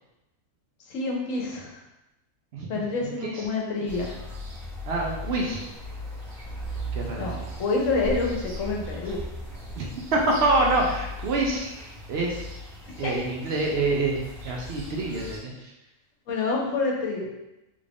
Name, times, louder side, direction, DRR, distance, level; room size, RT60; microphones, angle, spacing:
voice 1, 0.9-1.8 2.7-4.1 7.2-9.2 13.0-13.1 16.3-17.2, left 3 dB, 70° left, -1 dB, 1.1 m, -27 dB
voice 2, 3.0-3.4 4.9-5.7 6.9-7.3 9.8-11.7 12.1-12.4 13.0-15.7, right 2 dB, 60° right, -1 dB, 0.7 m, -26 dB
sound 1, 3.9-15.4, left 1 dB, 75° right, 1.5 m, -37 dB
3.5 x 2.5 x 3.4 m, 0.93 s
omnidirectional pair, 1.4 m